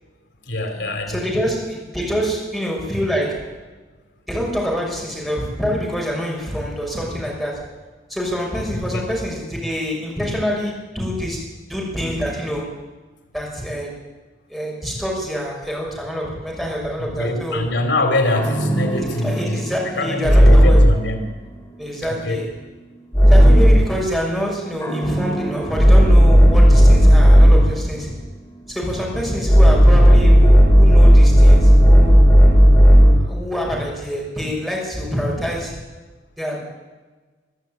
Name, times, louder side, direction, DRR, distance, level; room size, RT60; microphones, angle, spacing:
voice 1, 0.4-1.2 8.9-9.0 17.0-19.6 20.0-21.3 22.0-22.4, left 1 dB, 85° left, 5 dB, 3.1 m, -23 dB
voice 2, 1.1-3.5 4.3-7.7 8.1-11.4 11.7-12.7 13.3-13.9 14.5-17.6 19.1-20.8 21.8-22.5 23.3-28.1 28.7-32.2 33.3-35.8 36.4-36.6, equal, ahead, -3 dB, 6.3 m, -26 dB
sound 1, 18.3-21.1 23.1-24.0 24.8-27.8 29.4-33.3, equal, 15° left, 3.7 m, -11 dB
23.5 x 12.5 x 9.2 m, 1.3 s
head